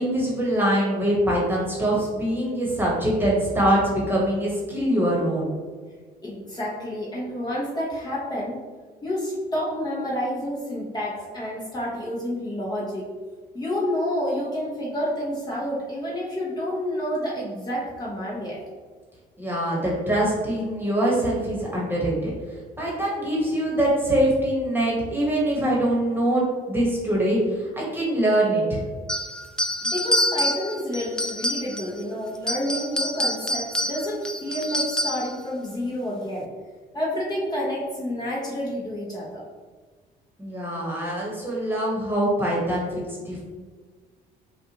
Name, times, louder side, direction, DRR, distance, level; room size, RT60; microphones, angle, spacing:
voice 1, 0.0-5.5 19.4-22.3 22.8-28.8 40.4-43.4, right 1 dB, 10° right, -5 dB, 1.4 m, -23 dB
voice 2, 6.2-8.6 9.0-13.0 13.5-18.6 29.8-36.5 36.9-39.4, equal, 25° left, -6 dB, 1.2 m, -29 dB
sound 1, 29.1-32.0 32.3-35.3, equal, 5° left, 0.3 m, -26 dB
5.4 x 2.5 x 3.0 m, 1.5 s
cardioid pair, 110°, 17 cm